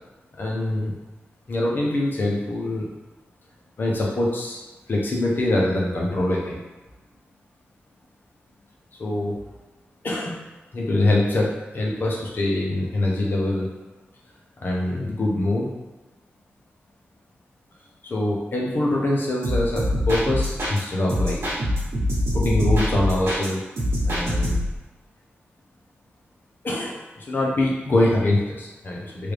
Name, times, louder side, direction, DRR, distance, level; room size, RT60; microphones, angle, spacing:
voice 1, 0.4-0.9 1.5-2.9 3.8-4.6 4.9-6.6 9.0-9.3 10.0-10.5 10.7-13.7 14.6-15.7 18.0-21.4 22.3-23.6 24.0-24.6 26.6-29.3, left 1 dB, 50° left, -3 dB, 0.7 m, -24 dB
sound 1, 19.4-20.8 21.1-23.5 23.8-24.8, left 1 dB, 70° right, 1.1 m, -24 dB
3.2 x 2.5 x 3.3 m, 1.1 s
wide cardioid pair, 95°, 4 cm